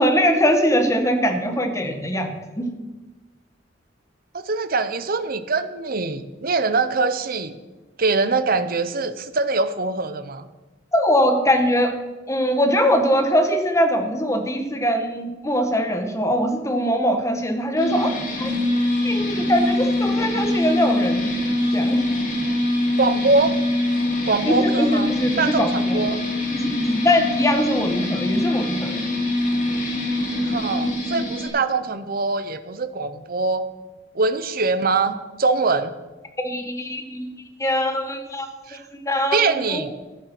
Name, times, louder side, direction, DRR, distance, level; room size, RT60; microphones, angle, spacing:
voice 1, 0.0-2.7 10.9-11.9 12.3-18.5 19.0-21.4 21.7-22.1 24.5-26.1 26.5-29.1 36.4-37.3 37.6-38.5 39.1-39.8, equal, 15° left, 5 dB, 1.3 m, -22 dB
voice 2, 4.3-7.5 8.0-10.5 23.0-23.6 24.3-26.2 30.4-33.7 34.1-36.0 38.7-38.8 39.3-39.9, right 3 dB, 50° right, 11 dB, 0.8 m, -23 dB
sound 1, 17.8-31.5, left 1 dB, 45° left, 3.0 m, -23 dB
14.0 x 9.6 x 6.0 m, 1.2 s
head